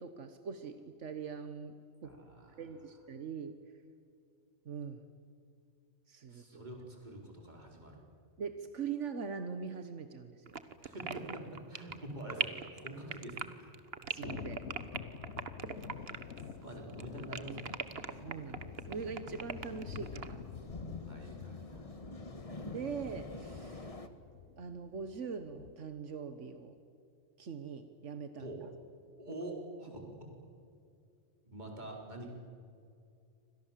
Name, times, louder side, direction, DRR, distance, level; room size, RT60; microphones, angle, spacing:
voice 1, 0.0-1.7 2.0-2.1 2.6-3.5 4.6-5.0 6.1-6.7 8.4-10.4 14.1-14.6 18.2-20.4 22.6-23.9 24.6-26.7 27.4-28.5, right 6 dB, 85° right, 9 dB, 1.6 m, -42 dB
voice 2, 2.0-2.6 6.3-8.0 10.8-13.7 16.6-17.8 21.1-21.9 28.4-28.6 29.2-30.3 31.4-32.3, right 1 dB, 40° right, 0 dB, 4.6 m, -46 dB
sound 1, 10.5-16.6 16.9-20.3, right 6 dB, 55° right, 1.4 m, -40 dB
Thunder, 14.2-25.7, left 7 dB, 65° left, 1.2 m, -48 dB
sound 2, 15.7-24.1, left 2 dB, 30° left, 1.6 m, -49 dB
29.0 x 25.5 x 7.5 m, 2.4 s
omnidirectional pair, 1.2 m